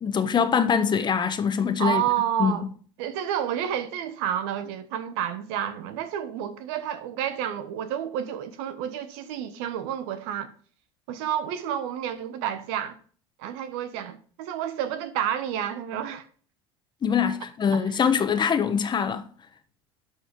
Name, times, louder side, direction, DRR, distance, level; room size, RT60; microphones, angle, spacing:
voice 1, 0.0-2.0 2.4-2.6 17.0-19.2, left 7 dB, 30° left, 1.1 m, -23 dB
voice 2, 1.8-2.7 3.0-10.5 11.1-13.0 13.4-16.2 17.7-17.9, right 10 dB, 70° right, 1.2 m, -30 dB
12.0 x 4.2 x 5.3 m
hypercardioid pair, 80°, 14 cm